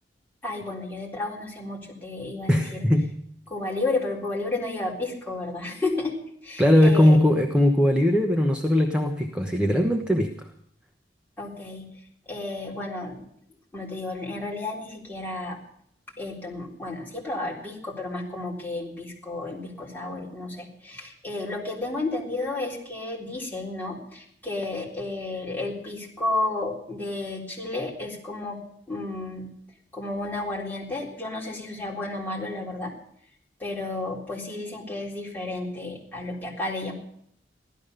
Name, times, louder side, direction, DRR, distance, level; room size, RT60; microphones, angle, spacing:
voice 1, 0.4-2.8 3.5-6.1 6.4-7.2 11.4-11.9 12.3-13.2 13.7-15.6 16.2-28.6 28.9-29.5 29.9-32.9 33.6-36.9, left 2 dB, 10° left, -4 dB, 3.8 m, -32 dB
voice 2, 2.5-3.1 6.6-10.5, left 1 dB, 5° right, 3 dB, 1.0 m, -20 dB
16.0 x 12.5 x 6.7 m, 0.69 s
head